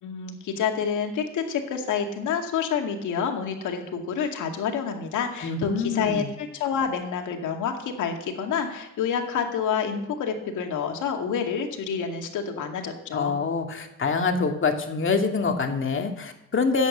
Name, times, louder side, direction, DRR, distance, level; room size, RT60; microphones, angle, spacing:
voice 1, 0.0-13.4, left 7 dB, 80° left, 3 dB, 2.2 m, -28 dB
voice 2, 5.4-6.3 13.1-16.9, left 4 dB, 40° left, 4 dB, 2.2 m, -25 dB
11.0 x 8.3 x 8.5 m, 0.86 s
cardioid pair, 90°, 30 cm